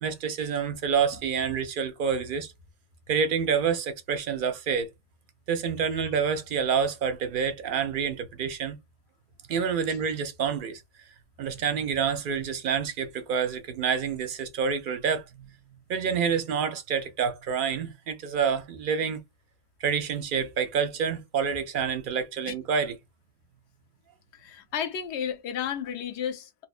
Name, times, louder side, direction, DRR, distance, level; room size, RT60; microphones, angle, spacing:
voice 1, 0.0-2.5 3.1-4.9 5.5-8.8 9.5-10.8 11.4-15.5 15.9-19.2 19.8-22.9, right 6 dB, 60° right, 0.6 m, -28 dB
voice 2, 24.3-26.7, left 8 dB, 75° left, 0.9 m, -33 dB
2.6 x 2.1 x 2.4 m
omnidirectional pair, 1.2 m